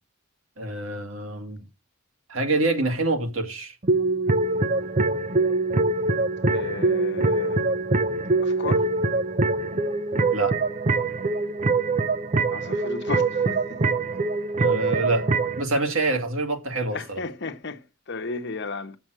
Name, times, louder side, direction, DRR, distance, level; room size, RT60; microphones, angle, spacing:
voice 1, 0.6-1.6 2.3-3.8 10.3-10.6 14.6-17.2, right 2 dB, 85° right, 2.1 m, -26 dB
sound 1, 3.8-15.6, right 3 dB, 35° right, 0.6 m, -23 dB
voice 2, 6.5-7.6 8.4-8.9 12.5-13.8 16.9-19.0, left 3 dB, 60° left, 1.0 m, -34 dB
7.7 x 7.1 x 6.2 m
head